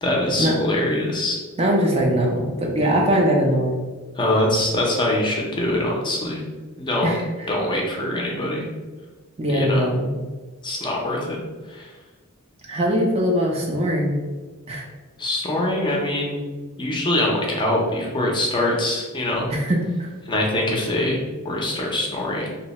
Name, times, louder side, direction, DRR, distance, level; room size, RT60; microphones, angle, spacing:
voice 1, 0.0-1.4 4.2-6.4 6.8-7.2 7.5-8.7 9.5-9.9 10.6-11.4 11.7-11.9 15.2-16.4 16.8-19.5 20.3-22.6, left 1 dB, 20° left, -2 dB, 0.6 m, -23 dB
voice 2, 1.6-3.8 7.0-7.5 9.4-10.1 12.7-14.2 14.7-14.9 19.5-20.1, equal, 30° right, 0 dB, 0.5 m, -21 dB
2.7 x 2.1 x 4.1 m, 1.3 s
head